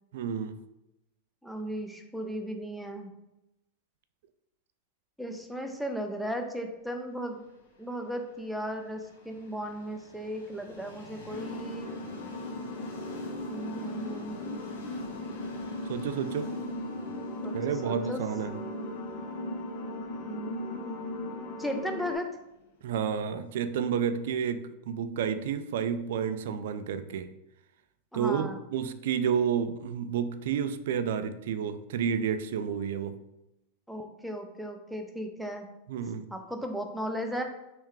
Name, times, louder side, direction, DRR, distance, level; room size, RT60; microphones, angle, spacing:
voice 1, 0.1-0.6 15.9-16.5 17.5-18.6 22.8-27.3 28.1-33.2 35.9-36.3, right 7 dB, 70° right, 0.3 m, -30 dB
voice 2, 1.4-3.1 5.2-7.4 7.8-11.9 13.5-14.7 17.4-17.6 17.8-18.2 20.2-20.9 21.6-22.3 28.1-28.6 33.9-35.7 36.3-37.5, equal, ahead, 0.5 m, -36 dB
Train, 7.3-23.1, left 3 dB, 85° left, 1.2 m, -50 dB
sound 1, 11.3-22.2, left 1 dB, 55° left, 0.6 m, -37 dB
3.5 x 3.3 x 3.1 m
hypercardioid pair, 120°, 0 cm